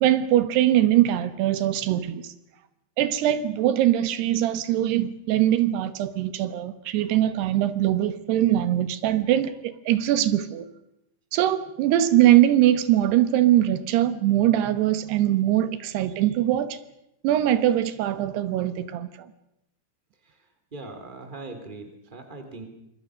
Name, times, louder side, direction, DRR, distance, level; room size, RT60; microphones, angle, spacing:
voice 1, 0.0-2.3 3.0-10.7 11.3-16.8 17.2-19.3, right 12 dB, 85° right, 3.3 m, -22 dB
voice 2, 20.7-22.6, right 3 dB, 15° right, 3.0 m, -40 dB
26.5 x 22.0 x 6.4 m
omnidirectional pair, 4.6 m